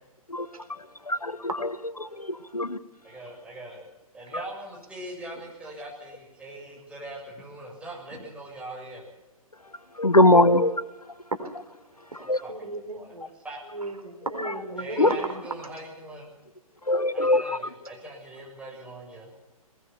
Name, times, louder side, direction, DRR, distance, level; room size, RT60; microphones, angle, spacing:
voice 1, 0.8-1.5 2.0-2.8 4.3-4.4 9.9-10.8 12.3-12.4 15.0-15.1 16.8-17.6, left 1 dB, 90° left, 14 dB, 1.3 m, -21 dB
voice 2, 3.0-3.8 4.1-9.1 12.2-13.1 13.4-13.6 14.8-16.3 17.1-19.3, right 1 dB, 5° right, -2 dB, 7.1 m, -41 dB
voice 3, 11.9-13.3 13.7-15.7, right 2 dB, 80° right, 7 dB, 4.0 m, -35 dB
21.5 x 20.0 x 7.0 m, 1.0 s
figure-of-eight pair, 125°, 19 cm